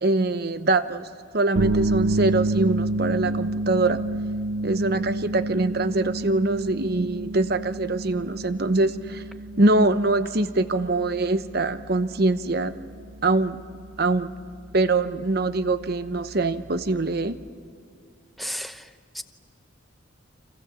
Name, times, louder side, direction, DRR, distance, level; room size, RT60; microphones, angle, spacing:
voice 1, 0.0-1.1 1.3-4.0 4.6-9.2 9.6-12.8 13.2-13.6 14.0-14.3 14.7-17.4, right 2 dB, 50° right, 0.9 m, -23 dB
sound 1, 1.6-17.5, right 2 dB, 85° right, 0.9 m, -30 dB
voice 2, 18.4-18.8 19.1-19.2, equal, ahead, 0.8 m, -32 dB
29.5 x 26.0 x 7.1 m
head